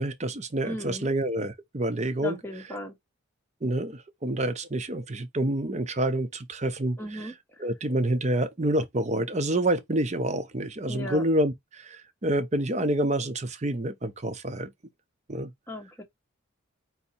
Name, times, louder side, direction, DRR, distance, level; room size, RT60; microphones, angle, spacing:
voice 1, 0.0-2.4 3.6-7.3 7.6-14.7 15.3-15.5, right 1 dB, 35° right, 0.7 m, -28 dB
voice 2, 0.6-1.1 2.2-2.9 7.0-7.7 10.9-11.2 15.7-16.0, equal, 10° left, 1.2 m, -36 dB
4.1 x 2.7 x 4.2 m
head